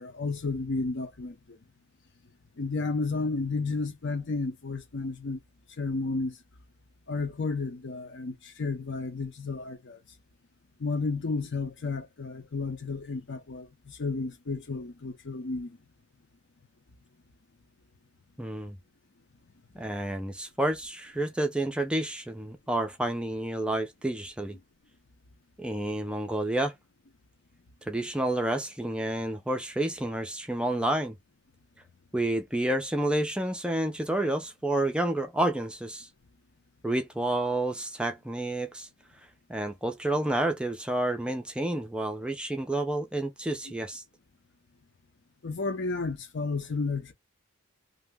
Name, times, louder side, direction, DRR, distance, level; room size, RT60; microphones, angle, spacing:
voice 1, 0.0-1.6 2.6-5.4 5.8-6.4 7.1-10.0 10.8-15.8 45.4-47.1, left 3 dB, 50° left, 0.6 m, -32 dB
voice 2, 18.4-18.8 19.8-24.6 25.6-26.7 27.8-31.2 32.1-36.1 36.8-38.9 39.5-44.0, right 1 dB, 5° right, 0.4 m, -29 dB
2.6 x 2.0 x 3.4 m
head